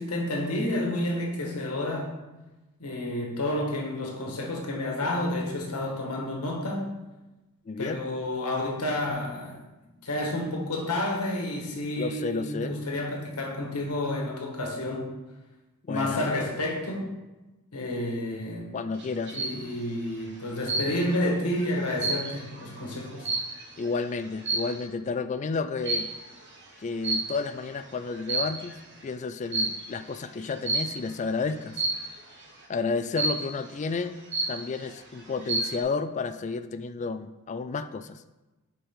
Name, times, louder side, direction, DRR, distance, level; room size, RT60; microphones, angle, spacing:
voice 1, 0.0-2.1 2.8-6.9 7.8-9.6 10.0-15.1 15.9-17.1 17.7-18.7 19.3-23.3, left 1 dB, 85° left, 0 dB, 1.5 m, -30 dB
voice 2, 7.7-8.0 12.0-12.7 15.9-16.3 18.7-19.4 23.8-26.1 26.8-31.8 32.7-34.1 34.5-38.2, left 4 dB, 30° left, 12 dB, 0.3 m, -31 dB
sound 1, 19.0-19.6 20.7-21.2 21.6-23.8 24.4-24.8 25.8-26.2 27.0-27.6 28.1-28.8 29.5-29.9 30.7-31.1 31.8-32.2 33.2-33.6 34.0-34.1 34.3-34.9 35.3-35.8, right 3 dB, 55° right, 1.2 m, -29 dB
6.8 x 5.3 x 3.7 m, 1.1 s
head